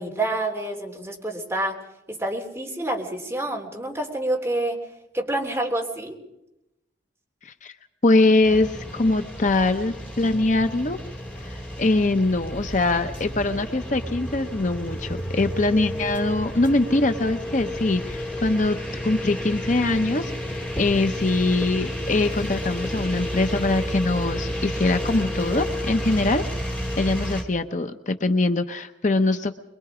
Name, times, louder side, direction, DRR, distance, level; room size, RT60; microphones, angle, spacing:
voice 1, 0.0-1.8 2.1-4.8 5.1-6.2, right 1 dB, 15° right, -1 dB, 3.6 m, -28 dB
voice 2, 7.4-7.8 8.0-11.0 11.4-18.8 19.0-26.4 27.0-29.6, left 2 dB, 45° left, 7 dB, 0.8 m, -23 dB
sound 1, 8.4-27.4, equal, 10° left, 3.1 m, -31 dB
24.5 x 22.0 x 5.0 m, 0.87 s
head